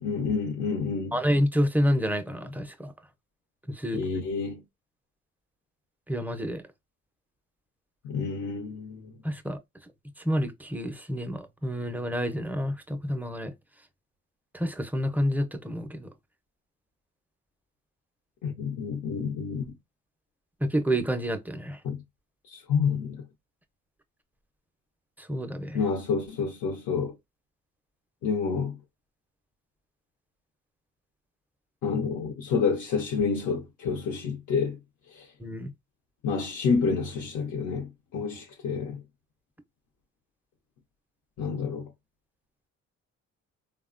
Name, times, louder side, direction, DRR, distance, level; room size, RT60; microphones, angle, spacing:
voice 1, 0.0-1.2 3.9-4.6 8.0-9.1 18.4-19.7 21.8-22.0 22.5-23.2 25.7-27.1 28.2-28.8 31.8-34.8 35.1-35.3 36.2-39.0 41.4-41.9, left 5 dB, 75° left, 0.7 m, -29 dB
voice 2, 1.1-2.9 3.7-4.0 6.1-6.6 9.2-9.6 10.2-13.5 14.5-16.1 20.6-21.8 25.2-25.8 35.4-35.7, equal, 5° right, 0.4 m, -28 dB
3.0 x 2.1 x 2.4 m
cardioid pair, 90°, 30 cm